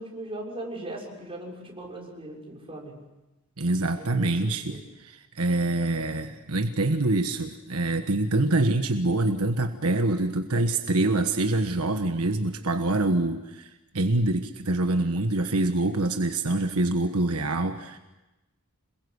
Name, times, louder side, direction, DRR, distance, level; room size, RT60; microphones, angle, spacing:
voice 1, 0.0-3.0 4.0-4.9, right 1 dB, 25° right, -1 dB, 6.5 m, -39 dB
voice 2, 3.6-18.0, right 2 dB, 75° right, 6 dB, 1.4 m, -25 dB
27.0 x 21.5 x 8.2 m, 1.0 s
head